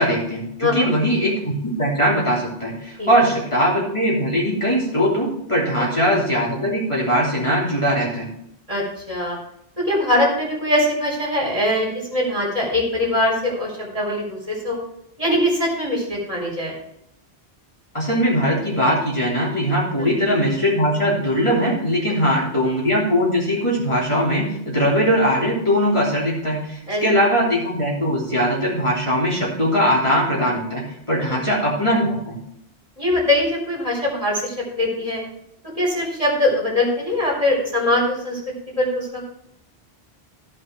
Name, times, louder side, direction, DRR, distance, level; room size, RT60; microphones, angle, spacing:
voice 1, 0.0-8.3 17.9-32.4, equal, 30° left, -5 dB, 3.3 m, -20 dB
voice 2, 0.6-0.9 3.0-3.1 5.8-5.9 8.7-9.4 9.8-14.8 15.2-16.7 20.0-20.1 26.9-27.0 31.2-31.4 33.0-35.2 35.8-38.4 38.8-39.2, left 1 dB, 35° right, -3 dB, 4.0 m, -22 dB
15.5 x 5.8 x 4.5 m, 0.75 s
omnidirectional pair, 1.1 m